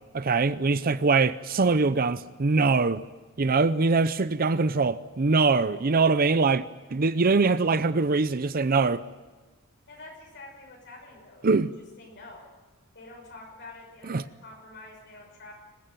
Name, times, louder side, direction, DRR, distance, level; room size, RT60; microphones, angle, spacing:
voice 1, 0.1-3.0 3.4-6.6 6.9-9.0 11.4-11.7 14.1-14.2, right 4 dB, 45° right, 0.6 m, -23 dB
voice 2, 9.9-11.5 12.0-12.5 12.9-15.5, left 2 dB, 55° left, 6.1 m, -47 dB
26.0 x 16.0 x 9.1 m
head